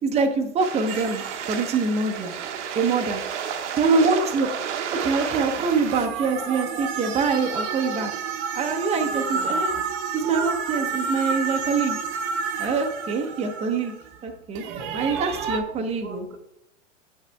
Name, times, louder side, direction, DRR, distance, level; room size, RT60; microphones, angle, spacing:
voice 1, 0.0-2.3 2.7-3.2 3.8-4.5 5.0-8.1 8.5-9.8 10.1-12.0 12.6-13.9 14.2-14.6 14.9-16.2, right 4 dB, 15° right, 4 dB, 0.8 m, -24 dB
sound 1, 0.6-6.1, right 8 dB, 65° right, 1.1 m, -31 dB
sound 2, 0.9-3.1 5.4-14.1 14.5-15.6, right 5 dB, 40° right, 1.0 m, -30 dB
voice 2, 8.9-9.8 12.1-12.3 15.5-16.4, right 3 dB, 85° right, 3 dB, 1.3 m, -40 dB
7.6 x 5.7 x 3.4 m, 0.79 s
hypercardioid pair, 105°, 38 cm